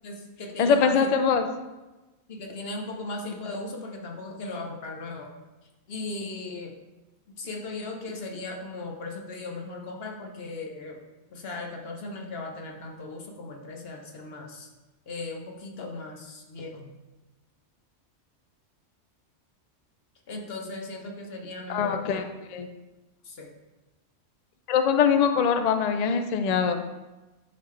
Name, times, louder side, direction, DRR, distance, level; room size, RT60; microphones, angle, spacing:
voice 1, 0.0-1.0 2.3-5.3 5.9-6.7 7.4-11.0 11.3-14.7 15.1-16.9 20.3-22.2 23.2-23.5, left 2 dB, 55° left, 1 dB, 1.1 m, -37 dB
voice 2, 0.6-1.5 21.7-22.2 22.5-22.7 24.7-26.8, left 6 dB, 75° left, 7 dB, 0.3 m, -22 dB
10.5 x 3.7 x 3.2 m, 1.1 s
omnidirectional pair, 1.3 m